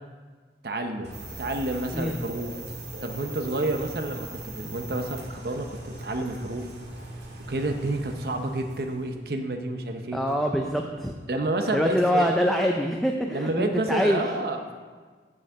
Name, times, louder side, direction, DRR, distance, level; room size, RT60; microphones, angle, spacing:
voice 1, 0.6-1.1 1.4-2.5 3.0-6.7 7.5-10.2 11.3-12.3 13.3-14.7, right 2 dB, 60° right, 5 dB, 0.7 m, -29 dB
Bird / Rain, 1.0-9.2, right 1 dB, 85° right, 1.8 m, -41 dB
sound 1, 1.1-6.8, right 5 dB, 35° right, 2.2 m, -45 dB
voice 2, 10.1-11.2 11.7-14.2, equal, ahead, 2 dB, 0.4 m, -24 dB
6.7 x 6.2 x 7.3 m, 1.5 s
head